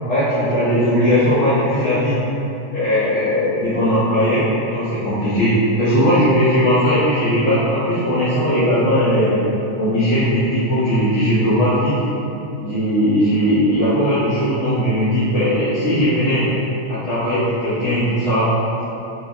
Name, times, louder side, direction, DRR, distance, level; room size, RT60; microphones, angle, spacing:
voice 1, 0.1-2.2 2.7-9.4 9.7-12.0 12.6-16.5 16.9-18.5, equal, 70° left, -13 dB, 1.0 m, -18 dB
3.1 x 2.3 x 2.4 m, 2.8 s
omnidirectional pair, 1.3 m